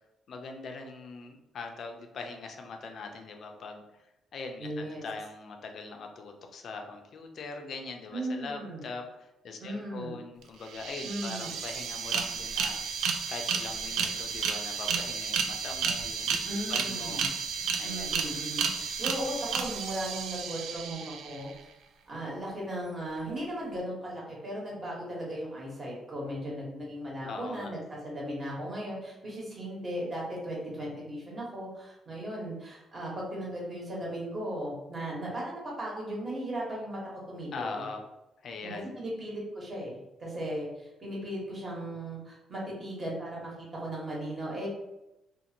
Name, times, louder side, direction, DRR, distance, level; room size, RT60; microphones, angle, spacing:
voice 1, 0.3-4.0 4.3-13.0 13.3-16.4 16.7-17.2 17.8-18.1 27.2-27.7 37.5-38.0 38.4-38.9, left 4 dB, 60° left, 4 dB, 0.5 m, -41 dB
voice 2, 4.6-5.0 8.1-8.8 9.6-10.1 11.0-11.5 16.4-17.3 17.8-21.5 22.1-37.0 37.3-37.7 38.6-44.7, right 1 dB, 40° right, -4 dB, 1.2 m, -37 dB
sound 1, 10.4-10.5 10.7-21.5, right 6 dB, 80° right, 0.3 m, -32 dB
2.6 x 2.5 x 2.8 m, 0.94 s
cardioid pair, 90°, 0 cm